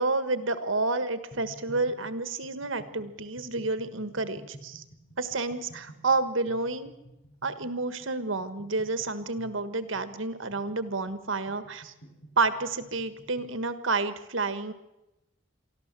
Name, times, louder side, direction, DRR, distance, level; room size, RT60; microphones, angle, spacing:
voice 1, 0.0-4.8 5.2-6.9 7.4-11.9 12.4-14.7, right 3 dB, 75° right, 11 dB, 1.5 m, -30 dB
sound 1, 1.3-13.6, right 1 dB, 80° left, 7.7 m, -52 dB
24.0 x 14.0 x 7.6 m, 0.94 s
head